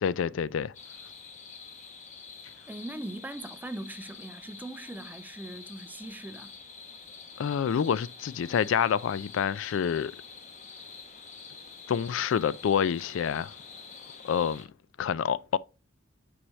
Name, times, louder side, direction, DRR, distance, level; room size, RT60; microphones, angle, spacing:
voice 1, 0.0-0.7 7.4-10.1 11.9-13.5 14.2-14.7 15.0-15.6, left 7 dB, 70° left, 0.3 m, -27 dB
sound 1, 0.7-14.7, left 5 dB, 35° left, 1.0 m, -47 dB
voice 2, 2.7-6.5, right 1 dB, 10° right, 0.4 m, -40 dB
8.7 x 4.8 x 3.1 m
head